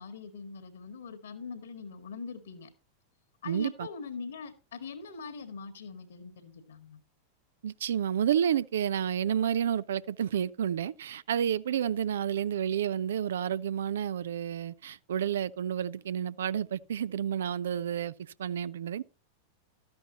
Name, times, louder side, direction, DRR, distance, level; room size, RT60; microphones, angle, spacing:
voice 1, 0.0-2.7 3.4-7.0, left 4 dB, 65° left, 1.8 m, -42 dB
voice 2, 3.5-3.9 7.6-18.1 18.4-19.0, right 9 dB, 60° right, 0.4 m, -30 dB
13.0 x 10.5 x 2.9 m
figure-of-eight pair, 90°, 0 cm